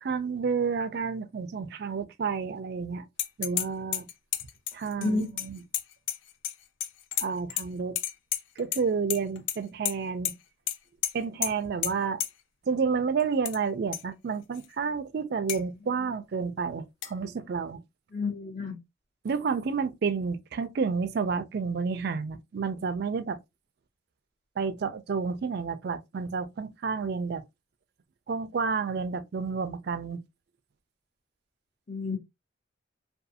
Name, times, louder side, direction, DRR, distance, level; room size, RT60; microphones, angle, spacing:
voice 1, 0.0-3.1 3.4-4.1 4.7-5.6 7.2-8.0 8.6-10.3 11.1-12.2 12.7-17.8 19.2-23.4 24.6-27.4 28.3-30.2, right 5 dB, 50° right, 0.3 m, -30 dB
sound 1, 3.2-3.7 3.9-6.5 6.8-7.6 8.0-8.8 9.1-9.6 9.8-9.9 10.2-10.3 10.7-10.8 11.0-11.1 11.4-11.5 11.8-11.9 12.2-12.3 13.2-13.6 13.9-14.0 14.5-14.6 15.5-15.6 17.0-17.1, left 11 dB, 70° left, 0.4 m, -30 dB
voice 2, 18.1-18.8 31.9-32.2, left 3 dB, 35° left, 1.0 m, -30 dB
2.5 x 2.3 x 2.6 m
head